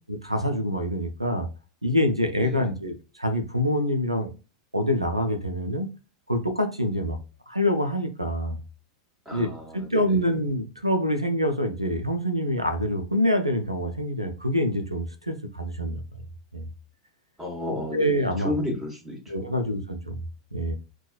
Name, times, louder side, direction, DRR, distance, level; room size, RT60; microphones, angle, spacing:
voice 1, 0.1-1.5 1.8-4.3 4.7-5.9 6.3-7.2 7.5-8.6 9.3-16.0 16.5-16.7 17.9-18.5 19.3-20.2 20.5-20.7, equal, 90° right, 7 dB, 0.4 m, -26 dB
voice 2, 9.3-10.0 17.4-19.5, left 1 dB, 10° right, -2 dB, 1.2 m, -32 dB
2.8 x 2.2 x 2.3 m, 0.30 s
figure-of-eight pair, 90°, 3 cm